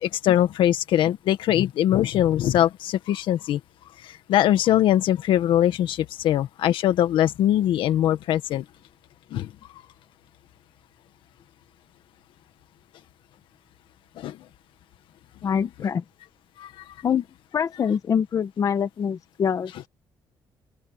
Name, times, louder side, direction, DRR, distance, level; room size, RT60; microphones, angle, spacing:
voice 1, 0.0-3.6 4.0-8.6 9.3-9.5 14.2-14.4 16.6-16.7, left 12 dB, 85° left, 1.7 m, -22 dB
voice 2, 15.4-16.0 17.0-17.3 17.5-19.9, left 7 dB, 45° left, 1.5 m, -25 dB
open air
cardioid pair, 130°, 8 cm